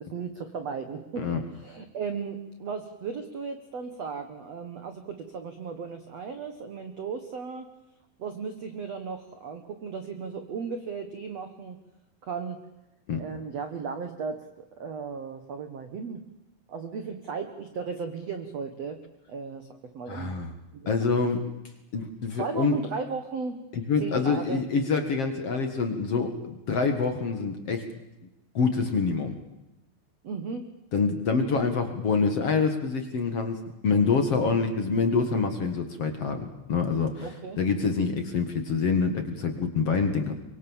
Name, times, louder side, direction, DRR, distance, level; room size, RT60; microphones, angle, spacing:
voice 1, 0.0-7.7 8.2-11.8 12.2-12.6 13.2-16.2 16.7-19.0 19.3-19.7 19.9-20.3 21.0-21.1 22.4-23.6 24.0-24.6 30.2-30.6 34.4-34.5 37.2-37.6, right 5 dB, 85° right, 7 dB, 1.4 m, -35 dB
voice 2, 20.1-20.5 20.9-21.4 21.9-22.8 23.7-27.9 28.5-29.4 30.9-40.3, left 5 dB, 55° left, 6 dB, 1.7 m, -26 dB
25.0 x 23.5 x 7.3 m, 0.95 s
omnidirectional pair, 5.6 m